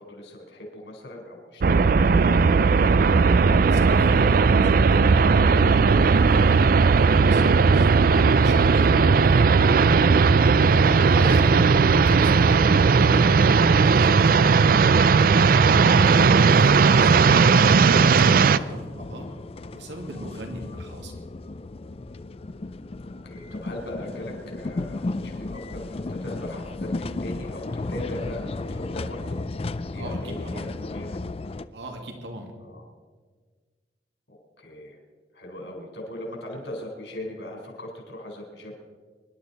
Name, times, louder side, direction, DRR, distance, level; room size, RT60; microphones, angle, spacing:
voice 1, 0.0-2.7 20.6-20.7 23.2-29.4 29.9-31.1 32.6-32.8 34.3-35.0 35.3-38.7, left 1 dB, 75° left, -1 dB, 4.1 m, -39 dB
sound 1, 1.6-18.6, right 5 dB, 55° right, 0.4 m, -17 dB
voice 2, 3.5-9.6 10.4-15.4 15.9-19.3 19.7-21.1 30.0-30.7 31.7-32.5, right 1 dB, 75° right, 3 dB, 2.2 m, -38 dB
sound 2, 15.2-31.7, left 2 dB, 35° left, 0.4 m, -35 dB
24.0 x 11.5 x 4.2 m, 1.5 s
head